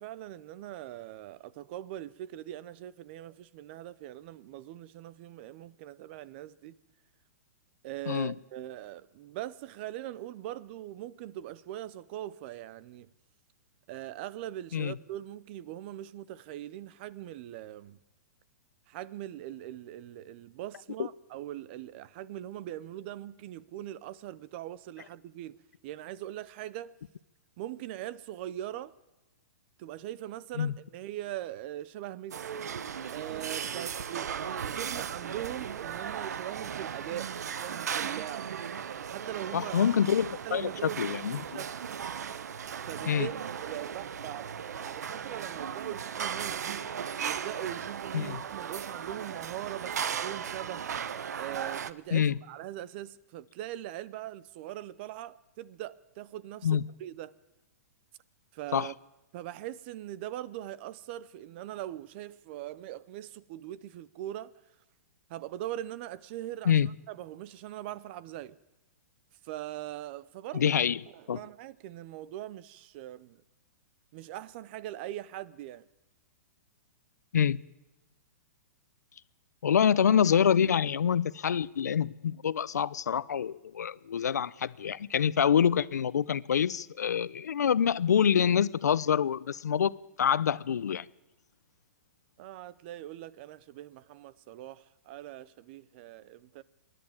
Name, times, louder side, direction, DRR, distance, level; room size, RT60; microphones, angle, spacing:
voice 1, 0.0-6.8 7.8-13.1 13.9-18.0 18.9-25.6 25.8-26.9 27.6-28.9 29.8-32.6 33.1-38.5 39.1-39.8 40.4-41.7 42.9-43.3 43.6-46.9 47.2-50.8 51.4-57.3 58.5-58.9 59.3-64.5 65.3-68.6 69.4-70.7 71.1-73.4 74.1-75.9 92.4-96.6, right 13 dB, 40° right, 0.8 m, -41 dB
sound 1, 32.3-51.9, right 8 dB, 80° right, 0.9 m, -37 dB
voice 2, 39.5-41.6 43.1-43.3 48.1-48.4 52.1-52.4 56.6-56.8 58.7-58.9 66.7-66.9 70.5-71.0 71.3-71.4 77.3-77.6 79.6-91.1, left 8 dB, 90° left, 0.7 m, -26 dB
27.0 x 11.0 x 8.8 m
hypercardioid pair, 150°, 9 cm